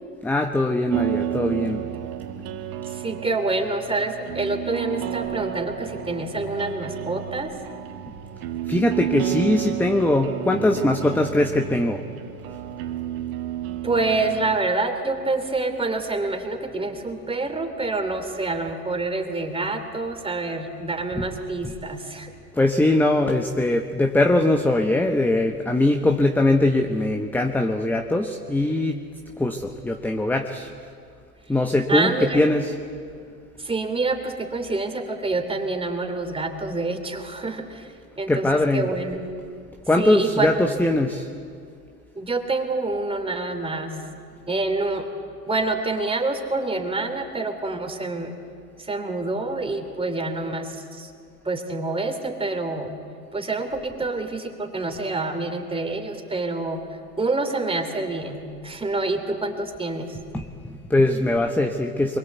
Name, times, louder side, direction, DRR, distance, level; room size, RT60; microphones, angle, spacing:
voice 1, 0.2-1.8 8.7-12.0 21.1-21.2 21.6-21.7 22.5-29.0 29.4-30.7 31.5-32.7 38.3-38.9 39.9-41.3 60.3-62.2, left 2 dB, 5° left, 5 dB, 1.1 m, -21 dB
sound 1, 0.9-14.6, right 11 dB, 45° right, 1.9 m, -31 dB
voice 2, 2.9-7.5 13.8-22.3 31.9-32.4 33.6-38.5 38.7-39.3 40.0-40.5 42.1-44.0 44.5-45.1 45.4-48.3 48.8-51.1 51.4-53.0 53.3-56.8 57.2-60.2, right 3 dB, 10° right, 5 dB, 3.2 m, -27 dB
24.5 x 22.5 x 8.2 m, 2.3 s
hypercardioid pair, 90°, 48 cm